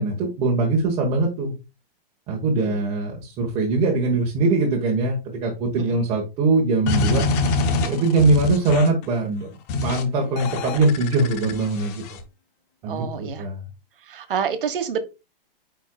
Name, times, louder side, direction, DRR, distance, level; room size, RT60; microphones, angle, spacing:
voice 1, 0.0-1.5 2.3-7.3 7.9-9.5 9.8-12.2 12.8-13.6, right 3 dB, 20° right, 1.1 m, -22 dB
sound 1, 6.9-9.0 9.7-10.0 10.4-12.2, left 3 dB, 15° left, 0.5 m, -25 dB
voice 2, 12.8-13.5 14.0-15.0, right 7 dB, 65° right, 1.3 m, -28 dB
9.3 x 4.5 x 2.3 m
hypercardioid pair, 160°, 29 cm